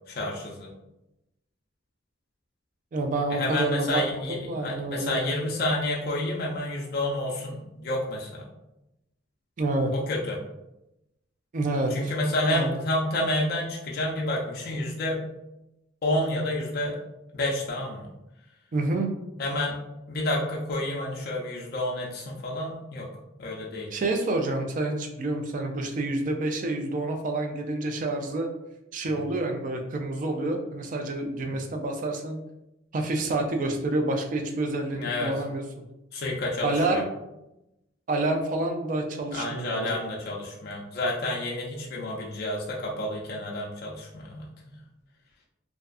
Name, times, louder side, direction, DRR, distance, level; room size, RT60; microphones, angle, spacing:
voice 1, 0.1-0.7 3.3-8.4 9.9-10.4 11.9-15.2 16.0-17.0 17.3-18.1 19.4-19.8 20.1-23.1 23.4-23.9 29.1-29.2 34.9-35.3 36.1-37.0 39.3-44.5, left 1 dB, 50° left, -3 dB, 0.4 m, -29 dB
voice 2, 2.9-5.3 9.6-9.9 11.5-12.1 12.5-12.8 18.7-19.1 23.9-28.5 28.9-32.4 32.9-35.6 36.6-37.0 38.1-40.0, right 2 dB, 40° right, 3 dB, 0.3 m, -28 dB
2.5 x 2.3 x 2.3 m, 0.92 s
head